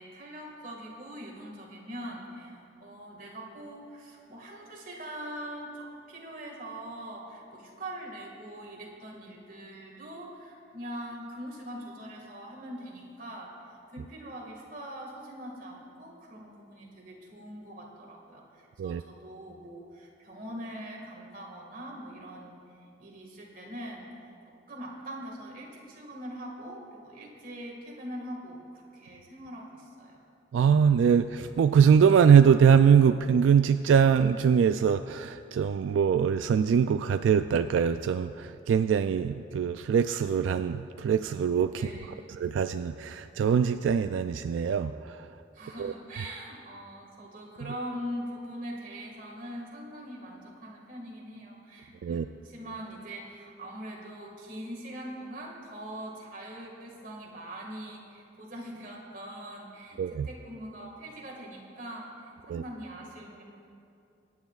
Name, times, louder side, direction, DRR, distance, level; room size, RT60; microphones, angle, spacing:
voice 1, 0.0-22.6 23.0-24.3 24.7-30.2 41.7-42.3 45.5-63.4, equal, 45° right, -1 dB, 1.9 m, -42 dB
voice 2, 30.5-41.9 42.3-45.3 45.8-45.9 52.0-52.3 60.0-60.3 62.5-62.6, right 7 dB, 90° right, 10 dB, 0.3 m, -23 dB
23.5 x 9.2 x 2.4 m, 2.6 s
head